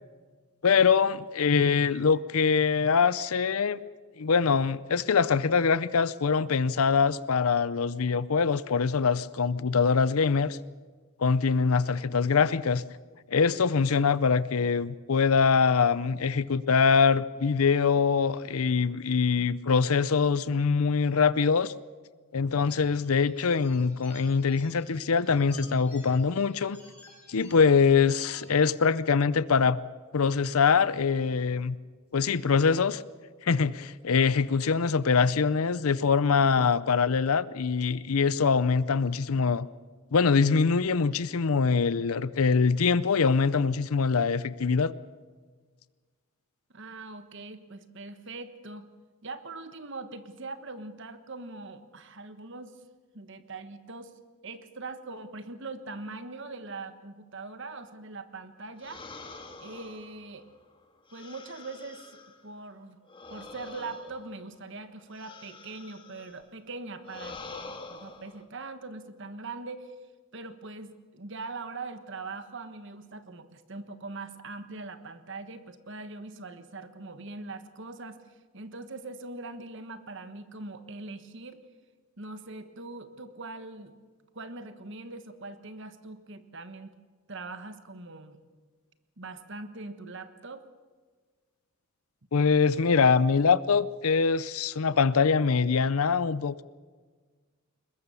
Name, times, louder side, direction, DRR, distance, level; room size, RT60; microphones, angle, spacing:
voice 1, 0.6-3.8 4.2-10.6 11.2-12.8 13.3-21.7 22.3-26.8 27.3-29.8 30.1-31.8 32.1-33.0 33.4-39.7 40.1-44.9 92.3-96.6, left 5 dB, 75° left, 17 dB, 0.6 m, -24 dB
sound 1, 22.7-28.7, left 1 dB, 5° left, 6.0 m, -54 dB
voice 2, 46.7-48.9 49.2-52.8 53.1-59.0 59.6-60.4 61.1-63.0 63.3-69.9 70.3-81.6 82.2-83.9 84.3-86.9 87.3-88.4 89.2-90.6, right 3 dB, 55° right, 10 dB, 1.4 m, -42 dB
sound 2, 58.8-62.5 63.1-66.4 67.0-68.4, left 3 dB, 25° left, 1.7 m, -46 dB
22.5 x 21.0 x 7.0 m, 1.5 s
head